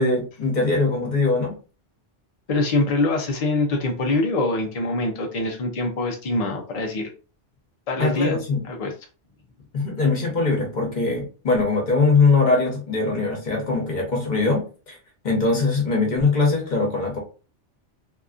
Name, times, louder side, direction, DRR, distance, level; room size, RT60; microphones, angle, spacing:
voice 1, 0.0-1.5 8.0-8.6 9.7-15.0 15.2-17.2, left 3 dB, 40° left, 0 dB, 1.0 m, -21 dB
voice 2, 2.5-7.0 7.9-8.4 8.7-8.9, left 2 dB, 60° left, 2 dB, 0.4 m, -24 dB
2.7 x 2.4 x 2.4 m, 0.34 s
omnidirectional pair, 1.2 m